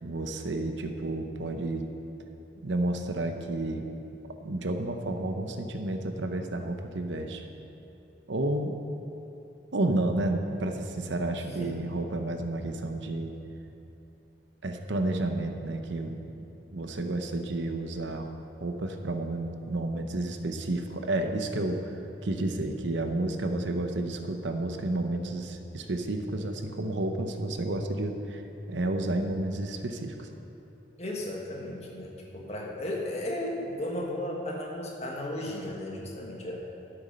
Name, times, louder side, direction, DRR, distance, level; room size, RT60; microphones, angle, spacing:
voice 1, 0.0-1.8 2.6-3.8 4.4-7.4 8.3-8.8 9.7-13.3 14.6-16.5 16.7-18.3 18.6-22.0 22.2-28.4 28.7-30.3, right 2 dB, 75° right, 5 dB, 0.8 m, -31 dB
voice 2, 11.3-11.8 31.0-36.6, left 1 dB, 35° left, -1 dB, 1.6 m, -35 dB
12.0 x 8.0 x 5.5 m, 2.9 s
head